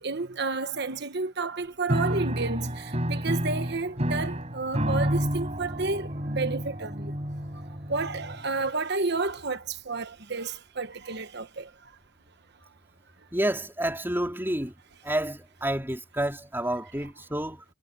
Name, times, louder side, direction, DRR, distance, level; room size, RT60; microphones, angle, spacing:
voice 1, 0.0-7.1 7.9-11.7, right 3 dB, 50° right, 1.2 m, -31 dB
Piano, 1.9-8.7, equal, 30° right, 6.6 m, -30 dB
voice 2, 13.3-14.7 15.0-17.6, right 1 dB, 10° right, 3.9 m, -29 dB
head